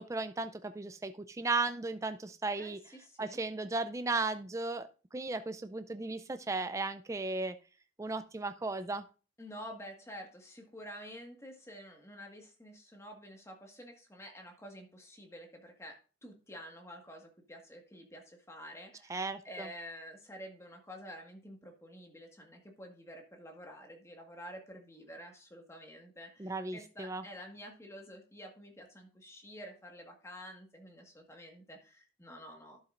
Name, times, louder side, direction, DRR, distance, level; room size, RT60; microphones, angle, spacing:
voice 1, 0.0-2.8 3.2-4.9 5.1-7.5 8.0-9.0 19.1-19.7 26.4-27.2, right 3 dB, 15° right, 10 dB, 0.4 m, -35 dB
voice 2, 2.6-3.4 9.4-32.8, equal, 15° left, 2 dB, 1.6 m, -49 dB
11.5 x 7.3 x 2.5 m, 0.35 s
head